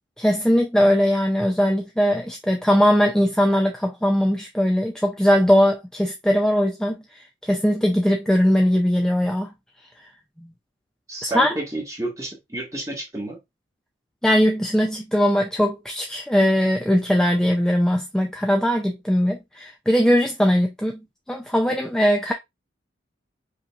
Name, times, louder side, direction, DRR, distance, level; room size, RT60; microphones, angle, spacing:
voice 1, 0.2-9.5 10.4-10.5 11.3-11.6 14.2-21.0 21.3-22.3, equal, 5° left, 0.4 m, -20 dB
voice 2, 11.1-13.4, right 2 dB, 20° right, 1.6 m, -30 dB
5.0 x 2.9 x 2.4 m
head